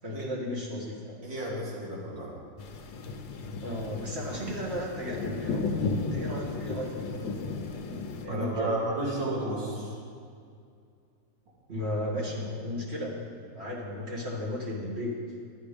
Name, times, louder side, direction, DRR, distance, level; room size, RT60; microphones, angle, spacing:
voice 1, 0.0-1.2 3.6-7.8 8.2-9.0 11.7-13.3 13.5-15.1, left 1 dB, 35° right, -3 dB, 1.7 m, -35 dB
voice 2, 1.2-2.3 8.3-9.9, right 1 dB, 75° right, -5 dB, 3.1 m, -32 dB
sound 1, 2.6-8.3, left 3 dB, 80° left, 1.6 m, -34 dB
11.5 x 8.5 x 5.1 m, 2.3 s
omnidirectional pair, 2.0 m